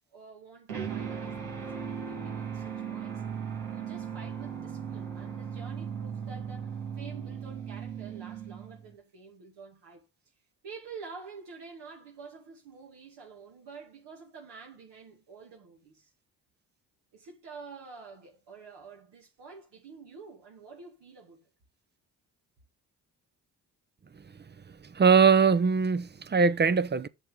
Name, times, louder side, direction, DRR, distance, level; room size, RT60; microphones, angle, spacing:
voice 1, 0.1-3.2 3.7-10.0 10.6-16.1 17.1-21.5, right 5 dB, 70° right, 2.3 m, -48 dB
sound 1, 0.7-8.9, right 7 dB, 85° right, 2.9 m, -37 dB
voice 2, 24.9-27.1, right 5 dB, 25° right, 0.7 m, -21 dB
8.1 x 6.8 x 3.8 m
hypercardioid pair, 55°, 43 cm